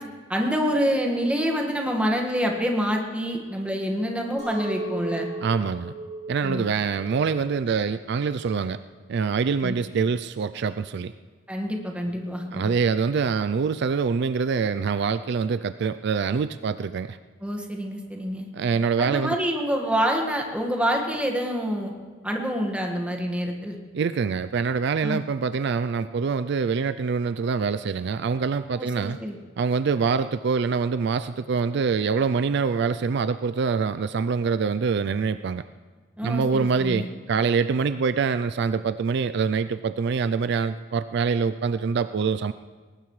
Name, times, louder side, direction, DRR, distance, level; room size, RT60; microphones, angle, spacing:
voice 1, 0.3-5.3 6.4-6.6 9.6-9.8 11.5-12.7 17.4-18.5 19.0-21.9 22.2-23.8 25.0-25.2 28.8-29.4 36.2-37.1, equal, 5° right, 1 dB, 1.7 m, -27 dB
Chink clink, 4.4-9.6, right 2 dB, 35° right, 4.7 m, -37 dB
voice 2, 5.4-5.9 6.3-8.8 9.1-11.1 12.5-17.2 18.5-19.4 23.9-29.2 29.6-35.6 36.2-42.5, right 5 dB, 60° right, 12 dB, 0.4 m, -25 dB
21.0 x 19.0 x 3.2 m, 1.4 s
head